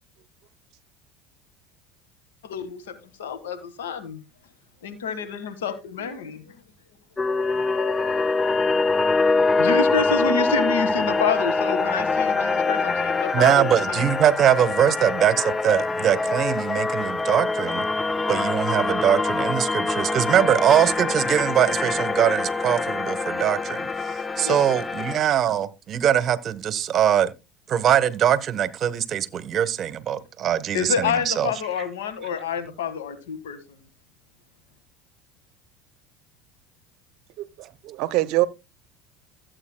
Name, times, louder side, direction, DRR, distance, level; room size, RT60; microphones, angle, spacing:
voice 1, 2.4-4.2 4.8-6.6 9.6-14.0 24.4-24.6 30.7-33.8, left 6 dB, 85° left, 1.6 m, -28 dB
sound 1, 7.2-25.2, left 3 dB, 20° left, 0.5 m, -24 dB
voice 2, 13.3-17.8 18.3-27.3 27.7-31.5, right 9 dB, 45° right, 1.0 m, -22 dB
voice 3, 37.4-38.5, right 18 dB, 65° right, 0.7 m, -24 dB
15.5 x 8.0 x 2.2 m
hypercardioid pair, 90°, 0 cm